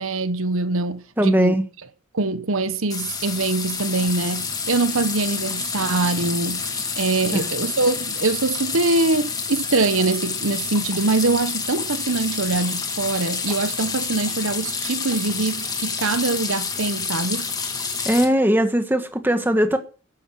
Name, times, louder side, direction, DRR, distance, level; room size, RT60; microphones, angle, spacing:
voice 1, 0.0-1.6 2.1-17.5, right 3 dB, 75° right, 1.1 m, -23 dB
voice 2, 1.2-1.7 7.3-7.5 18.0-19.8, equal, 10° right, 1.5 m, -19 dB
sound 1, 2.9-18.3, left 5 dB, 20° left, 1.8 m, -28 dB
14.0 x 10.0 x 6.3 m
head